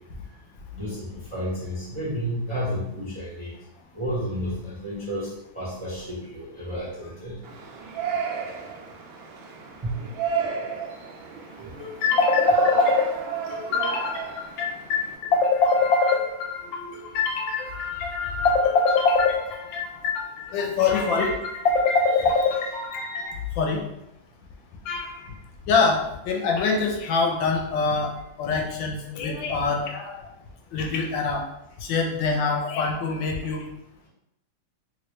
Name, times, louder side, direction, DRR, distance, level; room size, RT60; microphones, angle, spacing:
voice 1, 0.7-3.5 3.9-7.4 9.8-9.9, equal, 25° right, -8 dB, 0.7 m, -31 dB
Yell, 7.4-15.2, right 6 dB, 85° right, 1.4 m, -32 dB
voice 2, 11.8-13.2 13.5-23.8 24.8-25.3 25.7-30.3 30.7-31.4 31.8-33.6, left 4 dB, 80° left, 2 dB, 1.3 m, -24 dB
3.1 x 3.0 x 3.1 m, 0.85 s
omnidirectional pair, 2.1 m